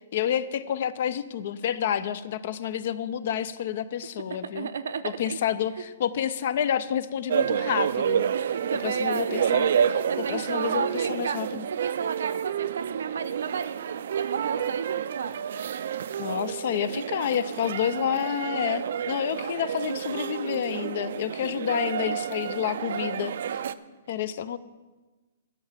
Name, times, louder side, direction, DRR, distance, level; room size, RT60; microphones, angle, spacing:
voice 1, 0.1-4.7 5.0-8.2 8.8-11.7 16.2-23.6 24.1-24.6, left 9 dB, 45° left, 16 dB, 0.4 m, -29 dB
voice 2, 4.5-5.4 8.3-9.6 10.1-11.4 11.7-15.3 23.6-23.7, right 6 dB, 80° right, 10 dB, 0.7 m, -32 dB
sound 1, 7.3-23.7, right 8 dB, 55° right, 0.4 m, -29 dB
12.5 x 5.5 x 7.3 m, 1.3 s
hypercardioid pair, 175°, 0 cm